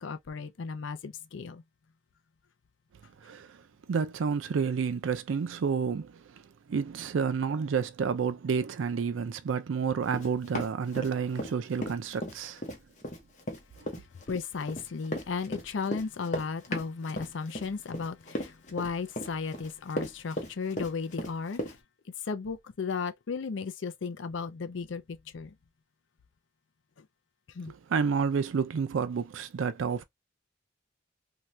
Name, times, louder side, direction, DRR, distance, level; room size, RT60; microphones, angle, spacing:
voice 1, 0.0-1.6 14.3-21.7 22.3-25.5 27.6-27.7, left 5 dB, 80° left, 0.5 m, -35 dB
voice 2, 3.2-3.6 3.9-6.2 6.7-12.6 27.7-30.0, right 6 dB, 85° right, 0.4 m, -30 dB
Run, 10.1-11.5 11.8-21.8, equal, 40° left, 0.7 m, -36 dB
2.7 x 2.2 x 3.1 m
head